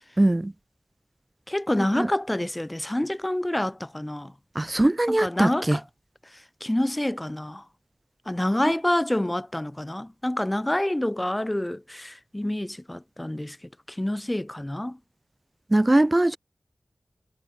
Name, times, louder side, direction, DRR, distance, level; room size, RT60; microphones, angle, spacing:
voice 1, 0.2-0.5 2.0-2.1 4.5-5.8 15.7-16.4, right 1 dB, 25° right, 1.1 m, -21 dB
voice 2, 1.5-4.3 5.1-5.8 6.6-7.6 8.3-13.6 13.9-15.0, left 1 dB, 15° left, 2.7 m, -27 dB
wide cardioid pair, 90°, 0 cm